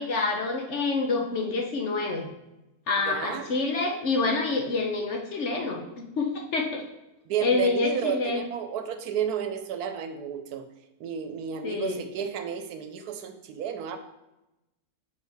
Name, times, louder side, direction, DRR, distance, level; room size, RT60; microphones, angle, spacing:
voice 1, 0.0-2.3 2.9-6.8 7.4-8.4 11.6-12.0, left 3 dB, 55° left, 1 dB, 1.0 m, -27 dB
voice 2, 3.1-3.5 7.3-10.7 11.0-14.0, right 8 dB, 80° right, 8 dB, 1.2 m, -32 dB
6.3 x 5.4 x 3.4 m, 0.97 s
omnidirectional pair, 1.6 m